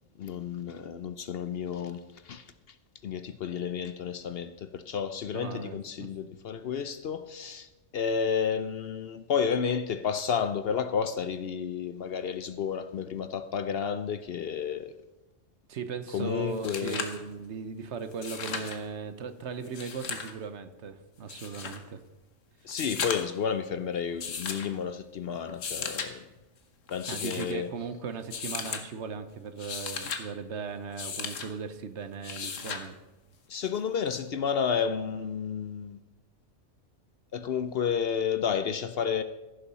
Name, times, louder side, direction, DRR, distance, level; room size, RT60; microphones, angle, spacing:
voice 1, 0.2-2.8 3.0-14.9 16.1-17.0 22.6-26.2 26.9-27.7 33.5-36.0 37.3-39.2, left 7 dB, 60° left, 11 dB, 0.7 m, -31 dB
voice 2, 5.3-6.1 15.7-22.0 27.1-32.9 35.1-35.2, right 5 dB, 65° right, 10 dB, 1.1 m, -38 dB
sound 1, 16.2-16.3 16.5-17.2 18.1-18.8 19.6-20.3 21.3-21.8 22.7-23.4 24.2-24.7 25.5-26.1 26.9-27.5 28.3-28.8 29.5-30.2 31.0-31.5 32.2-32.9 34.3-34.4, left 6 dB, 75° left, 1.4 m, -36 dB
15.0 x 7.0 x 5.5 m, 1.1 s
omnidirectional pair, 1.3 m